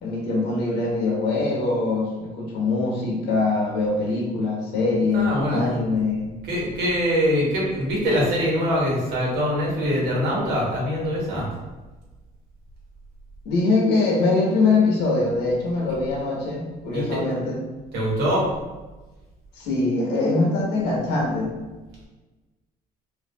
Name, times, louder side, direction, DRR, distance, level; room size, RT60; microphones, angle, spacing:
voice 1, 0.0-6.3 13.4-17.6 19.5-21.5, left 3 dB, 85° left, -2 dB, 1.1 m, -23 dB
voice 2, 5.1-5.7 6.5-11.5 16.9-17.2 17.9-18.4, equal, 85° right, -5 dB, 1.3 m, -23 dB
4.8 x 2.5 x 2.2 m, 1.2 s
cardioid pair, 110°, 17 cm